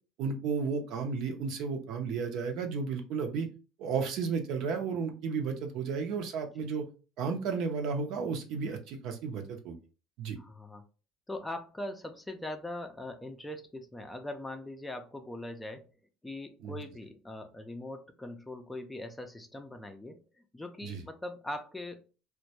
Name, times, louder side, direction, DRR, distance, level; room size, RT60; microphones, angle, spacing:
voice 1, 0.2-3.5 3.8-6.8 7.2-9.8 10.2-10.4 16.6-16.7 20.8-21.0, right 5 dB, 65° right, 4 dB, 0.6 m, -33 dB
voice 2, 10.4-10.8 11.3-15.9 16.2-22.0, left 1 dB, 10° left, 6 dB, 0.4 m, -41 dB
2.2 x 2.1 x 2.8 m, 0.34 s
supercardioid pair, 105°, 0 cm